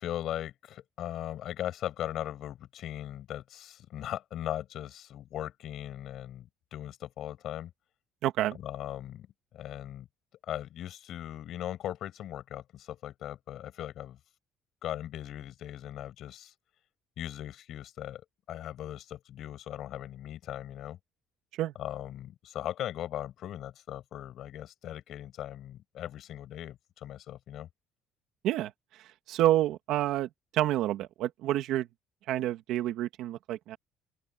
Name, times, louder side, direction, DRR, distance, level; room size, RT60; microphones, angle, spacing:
voice 1, 0.0-7.7 8.6-9.3 9.5-10.1 10.4-14.2 14.8-16.5 17.2-21.0 21.8-27.7, left 12 dB, 50° left, 7.6 m, -39 dB
voice 2, 8.2-8.6 21.6-21.7 28.4-28.7 29.3-31.9 32.3-33.8, right 13 dB, 65° right, 2.3 m, -28 dB
open air
cardioid pair, 155°, 0 cm